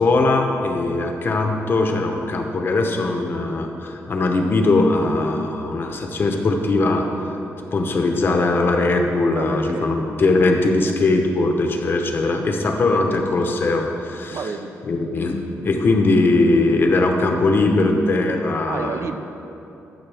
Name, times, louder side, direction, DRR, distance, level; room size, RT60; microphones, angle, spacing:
voice 1, 0.0-7.0 7.7-14.5 14.8-19.1, left 2 dB, 45° left, 3 dB, 0.8 m, -20 dB
voice 2, 9.4-9.9 14.3-14.7 18.7-19.2, right 5 dB, 55° right, 8 dB, 0.4 m, -30 dB
13.0 x 6.5 x 3.4 m, 2.9 s
wide cardioid pair, 145°, 5 cm